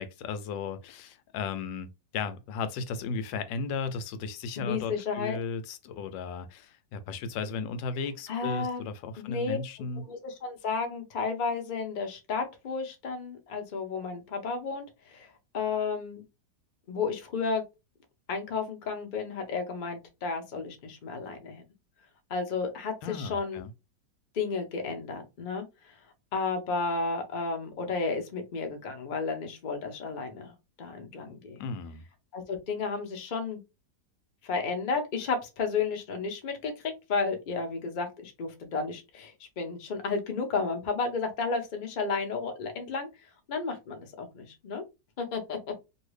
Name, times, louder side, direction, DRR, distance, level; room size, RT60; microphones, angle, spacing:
voice 1, 0.0-1.9 2.1-10.0 23.0-23.7 31.6-32.0, left 4 dB, 85° left, 1.3 m, -35 dB
voice 2, 4.6-5.4 8.3-8.9 9.2-9.6 10.1-16.2 16.9-17.6 18.3-21.6 22.3-23.6 24.3-25.6 26.3-31.6 32.3-33.6 34.4-43.1 43.5-44.8 45.2-45.6, left 4 dB, 50° left, 0.5 m, -32 dB
2.8 x 2.7 x 3.1 m
omnidirectional pair, 1.9 m